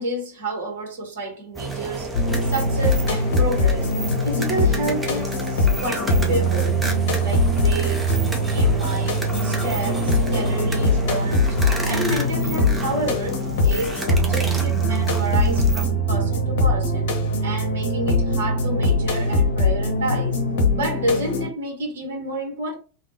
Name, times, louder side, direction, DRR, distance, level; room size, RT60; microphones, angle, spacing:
voice 1, 0.0-3.9 4.2-6.9 7.2-11.6 11.8-17.1 17.4-20.4 20.7-22.7, right 1 dB, 55° right, 1.2 m, -29 dB
sound 1, 1.5-15.9, right 2 dB, 10° right, 0.7 m, -31 dB
sound 2, 2.1-21.5, left 1 dB, 55° left, 0.8 m, -22 dB
3.4 x 2.4 x 2.8 m
figure-of-eight pair, 90°, 0 cm